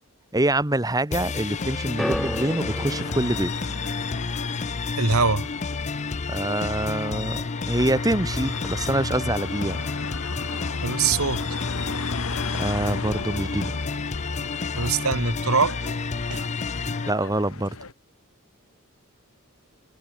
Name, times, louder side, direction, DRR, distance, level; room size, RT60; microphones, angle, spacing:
voice 1, 0.3-3.5 6.3-7.4 7.7-9.8 12.6-13.7 17.1-17.8, right 1 dB, 15° right, 1.7 m, -25 dB
sound 1, 1.1-17.1, left 4 dB, 35° left, 0.6 m, -30 dB
sound 2, 1.5-17.9, left 3 dB, 80° left, 2.0 m, -37 dB
sound 3, 2.0-8.3 8.5-9.2 9.9-10.0, equal, ahead, 0.8 m, -37 dB
voice 2, 5.0-5.5 10.8-11.4 14.7-16.0 16.3-16.4 16.7-16.9, right 4 dB, 90° right, 2.4 m, -24 dB
head